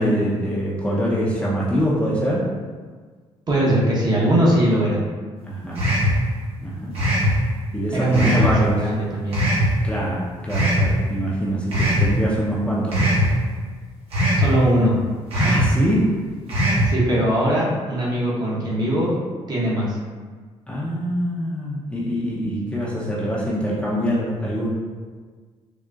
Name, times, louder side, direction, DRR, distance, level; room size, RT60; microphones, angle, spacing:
voice 1, 0.0-2.5 5.4-5.9 6.6-6.9 7.7-8.8 9.8-13.2 15.5-16.1 20.7-24.7, equal, 10° left, -6 dB, 0.6 m, -24 dB
voice 2, 3.5-5.1 7.9-9.4 14.4-15.0 15.3-15.5 16.9-19.1 19.5-20.0, right 1 dB, 35° right, -5 dB, 0.8 m, -20 dB
sound 1, 5.8-6.2 7.0-7.3 8.1-8.5 9.3-9.7 10.5-10.9 11.7-12.1 12.9-13.3 14.1-14.5 15.3-15.7 16.5-16.9, equal, 60° right, 1.0 m, -19 dB
3.8 x 2.1 x 2.3 m, 1.5 s
cardioid pair, 85°, 11 cm